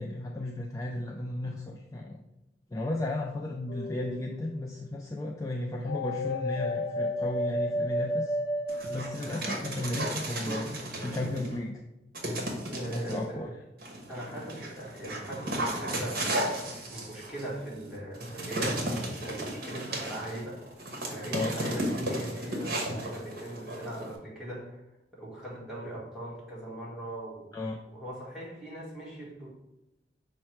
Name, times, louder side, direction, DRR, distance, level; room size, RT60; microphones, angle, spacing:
voice 1, 0.0-2.2 2.7-8.4 8.9-10.8 11.0-11.8 12.9-13.5 21.3-21.5 27.5-27.8, left 1 dB, 20° left, 0 dB, 0.3 m, -34 dB
sound 1, 3.7-4.4 5.8-9.7, left 1 dB, 80° left, 0.5 m, -32 dB
Dog, 8.7-11.6 12.1-13.2 13.8-24.2, right 1 dB, 55° right, 1.0 m, -35 dB
voice 2, 12.7-13.4 14.1-16.5 16.9-20.6 21.1-24.8 25.1-27.5 27.9-29.5, right 1 dB, ahead, -7 dB, 1.4 m, -40 dB
5.6 x 2.2 x 4.4 m, 0.96 s
head